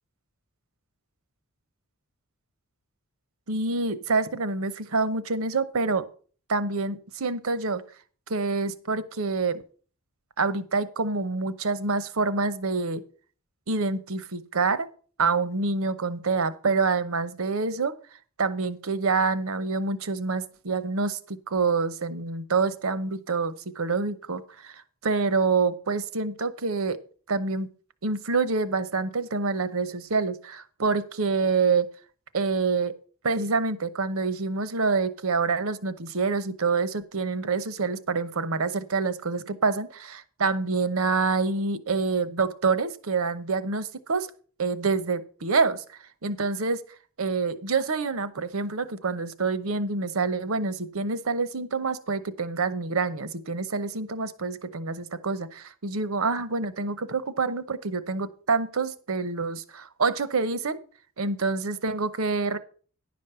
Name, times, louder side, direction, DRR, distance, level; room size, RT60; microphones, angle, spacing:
voice 1, 3.5-6.0 6.5-7.8 8.3-9.6 10.4-13.0 13.7-14.9 15.2-17.9 18.4-24.7 25.0-27.0 27.3-27.7 28.0-31.9 32.3-32.9 33.2-44.3 44.6-45.8 46.2-46.8 47.2-60.8 61.2-62.6, right 4 dB, 70° right, 14 dB, 0.8 m, -27 dB
10.5 x 5.2 x 6.8 m, 0.42 s
head